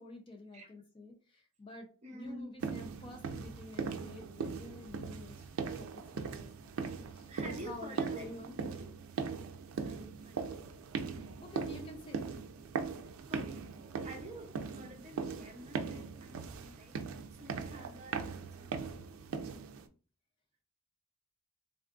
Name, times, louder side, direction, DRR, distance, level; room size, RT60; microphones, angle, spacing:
voice 1, 0.0-5.5 5.8-6.5 7.1-8.6 11.4-12.3, left 1 dB, 25° left, 3 dB, 0.5 m, -49 dB
voice 2, 2.0-2.6 7.3-8.9 9.8-10.7 13.3-13.5 14.0-17.0 17.3-19.1, equal, 30° right, 3 dB, 0.6 m, -49 dB
sound 1, 2.6-19.9, right 5 dB, 80° right, 0.4 m, -40 dB
3.5 x 2.4 x 2.3 m, 0.38 s
head